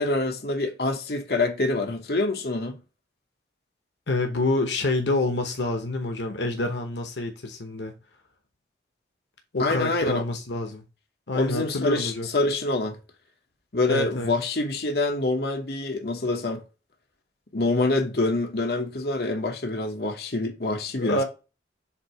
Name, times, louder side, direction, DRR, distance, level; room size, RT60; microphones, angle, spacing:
voice 1, 0.0-2.8 9.6-10.2 11.3-12.9 13.7-16.6 17.5-21.2, left 2 dB, 60° left, 1.1 m, -26 dB
voice 2, 4.1-7.9 9.5-10.8 11.3-12.3 13.9-14.3 21.0-21.2, left 2 dB, 80° left, 1.0 m, -27 dB
7.3 x 2.8 x 4.6 m
head